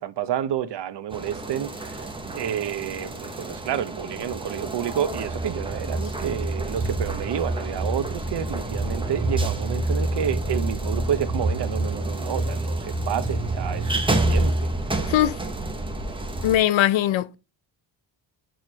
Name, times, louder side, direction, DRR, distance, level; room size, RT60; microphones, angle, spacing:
voice 1, 0.0-1.9 2.2-14.7, right 9 dB, 60° right, 0.8 m, -29 dB
sound 1, 1.1-16.6, right 2 dB, 10° right, 0.8 m, -28 dB
voice 2, 15.1-15.4 16.4-17.4, left 12 dB, 75° left, 0.6 m, -20 dB
6.3 x 4.5 x 5.3 m
wide cardioid pair, 165°, 48 cm